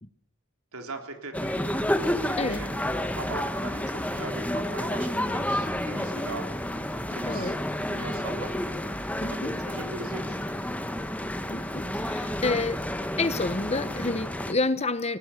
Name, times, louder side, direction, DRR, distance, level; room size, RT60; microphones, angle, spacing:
voice 1, 0.7-6.5 7.1-7.5 7.9-8.6 9.3-10.7, right 3 dB, 85° right, 4 dB, 3.7 m, -40 dB
sound 1, 1.3-14.5, left 1 dB, 5° left, 1.3 m, -30 dB
voice 2, 7.2-7.6 9.2-9.5 11.5-12.8 13.2-15.2, left 3 dB, 30° left, 13 dB, 1.1 m, -29 dB
20.0 x 18.0 x 8.4 m, 0.80 s
head